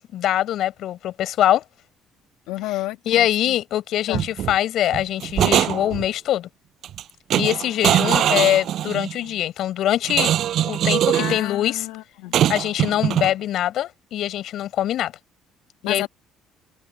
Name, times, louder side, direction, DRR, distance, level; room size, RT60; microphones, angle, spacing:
voice 1, 0.0-1.6 3.1-6.5 7.3-10.3 10.6-11.9 12.5-15.1 15.8-16.1, left 12 dB, 65° left, 4.5 m, -23 dB
voice 2, 2.5-3.6 4.1-4.3 11.1-12.4 15.8-16.1, left 17 dB, 85° left, 2.2 m, -31 dB
sound 1, 4.1-4.5 4.9-6.1 6.8-7.0 7.3-9.1 10.1-11.4 12.3-13.3, right 11 dB, 60° right, 6.6 m, -21 dB
supercardioid pair, 90°, 0 cm